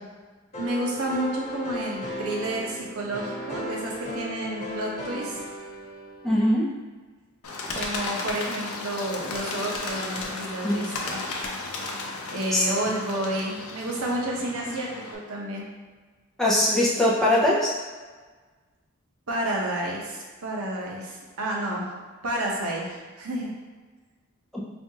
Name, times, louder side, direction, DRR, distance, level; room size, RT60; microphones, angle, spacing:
sound 1, 0.5-6.4, equal, 30° left, 1.0 m, -36 dB
voice 1, 0.6-5.4 7.7-11.3 12.3-15.7 19.3-21.9 22.2-23.5, right 1 dB, 90° right, -2 dB, 0.7 m, -30 dB
voice 2, 6.2-6.7 7.7-7.8 10.6-10.7 12.5-12.6 16.4-17.7 24.5-24.6, left 1 dB, ahead, -7 dB, 0.5 m, -21 dB
Bird, 7.4-15.2, left 3 dB, 85° left, 0.5 m, -34 dB
4.2 x 2.3 x 2.7 m, 1.4 s
head